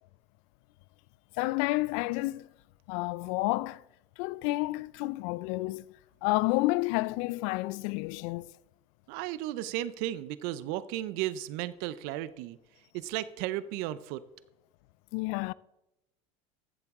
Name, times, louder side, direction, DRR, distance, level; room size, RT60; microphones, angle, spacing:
voice 1, 1.4-2.5 2.9-3.8 4.2-5.8 6.2-8.5 15.1-15.5, left 21 dB, 70° left, 0.4 m, -30 dB
voice 2, 9.1-12.6 12.9-14.2, right 14 dB, 70° right, 0.6 m, -34 dB
14.0 x 8.1 x 3.6 m
supercardioid pair, 110°, 17 cm